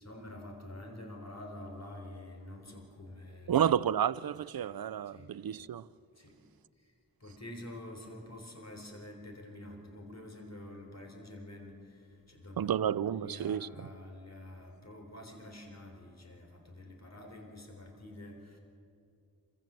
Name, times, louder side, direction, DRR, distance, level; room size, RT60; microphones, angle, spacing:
voice 1, 0.0-3.6 5.1-5.3 6.2-6.4 7.2-18.6, left 1 dB, 45° left, 3.8 m, -47 dB
voice 2, 3.5-5.9 12.6-13.9, right 9 dB, 85° right, 0.5 m, -31 dB
26.5 x 15.5 x 7.5 m
cardioid pair, 40°, 35 cm